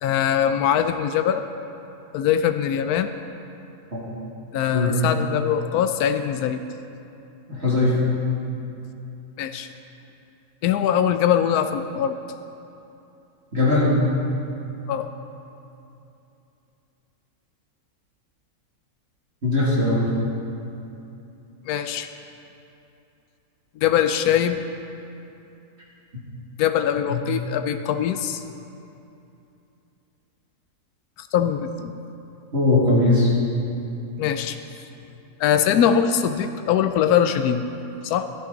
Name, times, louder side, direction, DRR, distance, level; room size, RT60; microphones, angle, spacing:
voice 1, 0.0-1.4 2.1-3.1 4.5-6.6 9.4-9.7 10.6-12.2 14.9-15.1 21.7-22.1 23.8-24.6 26.6-28.4 31.2-31.9 34.2-34.6 35.4-37.6 38.0-38.2, left 9 dB, 90° left, 8 dB, 1.1 m, -22 dB
voice 2, 7.5-8.0 13.5-14.0 19.4-20.0 27.1-27.2 32.5-33.3, left 2 dB, 45° right, -7 dB, 2.7 m, -19 dB
13.5 x 12.5 x 3.9 m, 2.8 s
omnidirectional pair, 1.5 m